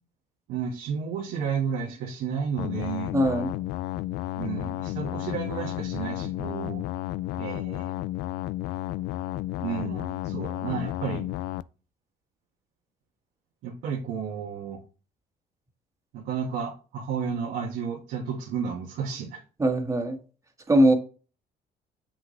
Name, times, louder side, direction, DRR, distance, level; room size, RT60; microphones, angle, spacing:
voice 1, 0.5-3.1 4.4-6.8 7.4-7.9 9.6-11.3 13.6-14.8 16.1-19.4, right 6 dB, 80° right, 1.6 m, -32 dB
sound 1, 2.6-11.6, left 15 dB, 85° left, 0.4 m, -32 dB
voice 2, 3.1-3.5 19.6-20.2 20.7-20.9, right 1 dB, 15° right, 1.7 m, -21 dB
8.0 x 6.1 x 3.2 m
cardioid pair, 110°, 17 cm